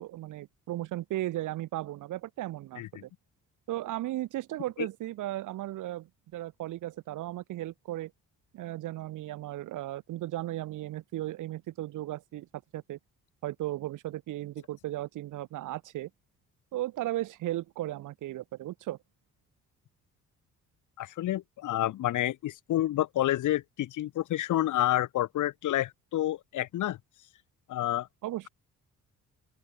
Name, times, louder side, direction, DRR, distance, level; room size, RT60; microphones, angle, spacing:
voice 1, 0.0-3.1 3.7-8.1 8.5-12.5 12.7-13.0 13.4-16.1 16.7-19.0 28.2-28.5, right 15 dB, 85° right, 6.4 m, -36 dB
voice 2, 21.0-27.0 27.7-28.1, left 13 dB, 80° left, 3.3 m, -29 dB
open air
cardioid pair, 90°, 30 cm